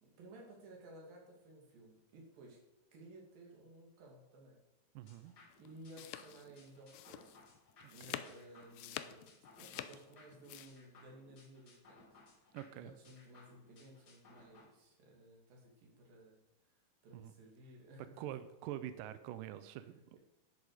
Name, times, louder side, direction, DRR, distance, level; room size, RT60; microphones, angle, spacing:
voice 1, 0.0-2.6 2.9-4.6 5.6-7.4 7.9-12.2 12.7-16.4 17.0-18.3, right 1 dB, 65° right, -1 dB, 4.2 m, -57 dB
voice 2, 5.0-5.3 7.8-8.2 12.5-12.9 17.1-17.3 18.2-20.2, right 12 dB, 80° right, 11 dB, 1.9 m, -46 dB
sound 1, 5.1-14.7, left 3 dB, 50° left, 1.2 m, -63 dB
sound 2, 5.5-10.7, left 12 dB, 85° left, 2.4 m, -47 dB
10.5 x 10.5 x 5.0 m, 0.94 s
omnidirectional pair, 4.5 m